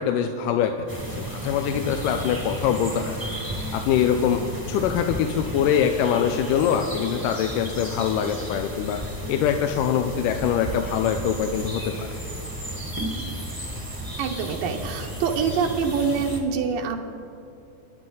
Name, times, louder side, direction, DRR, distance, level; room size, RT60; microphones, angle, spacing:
voice 1, 0.0-3.2 3.7-4.4 4.7-9.0 9.3-12.1, left 8 dB, 85° left, 5 dB, 2.3 m, -24 dB
sound 1, 0.9-16.4, right 1 dB, 15° right, 0.7 m, -33 dB
voice 2, 14.2-17.0, right 6 dB, 90° right, 3 dB, 2.7 m, -25 dB
26.0 x 11.0 x 3.9 m, 2.5 s
omnidirectional pair, 3.8 m